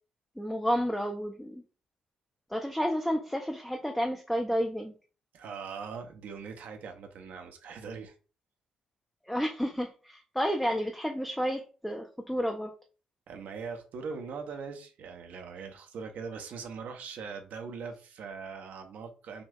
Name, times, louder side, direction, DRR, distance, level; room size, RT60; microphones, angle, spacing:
voice 1, 0.4-1.6 2.5-4.9 9.3-12.7, equal, 5° left, 0.6 m, -31 dB
voice 2, 5.3-8.1 13.3-19.4, right 5 dB, 55° right, 0.7 m, -41 dB
5.1 x 2.6 x 2.4 m
figure-of-eight pair, 40°, 3 cm